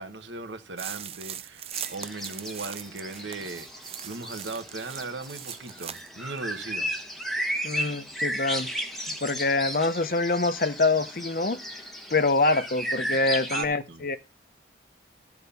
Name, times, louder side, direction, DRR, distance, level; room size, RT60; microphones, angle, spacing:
voice 1, 0.0-6.9 7.4-7.7 13.5-14.1, right 3 dB, 85° right, 1.3 m, -38 dB
sound 1, 0.8-6.1 6.4-6.5, right 10 dB, 35° right, 0.5 m, -40 dB
sound 2, 1.7-13.6, equal, ahead, 1.2 m, -35 dB
voice 2, 7.6-8.7 9.1-11.8 12.1-14.2, left 3 dB, 50° left, 0.8 m, -25 dB
13.0 x 4.8 x 6.9 m
head